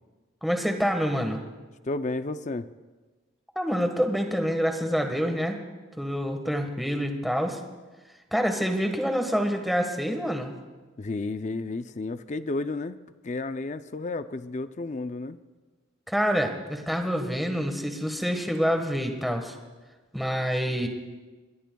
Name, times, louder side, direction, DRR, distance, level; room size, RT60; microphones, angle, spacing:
voice 1, 0.4-1.4 3.5-5.6 6.0-7.6 8.3-10.5 16.1-19.6 20.1-20.9, equal, ahead, 4 dB, 1.4 m, -27 dB
voice 2, 1.8-2.7 11.0-13.0 13.2-15.4, left 3 dB, 35° left, 12 dB, 0.4 m, -32 dB
27.5 x 22.5 x 2.3 m, 1.3 s
head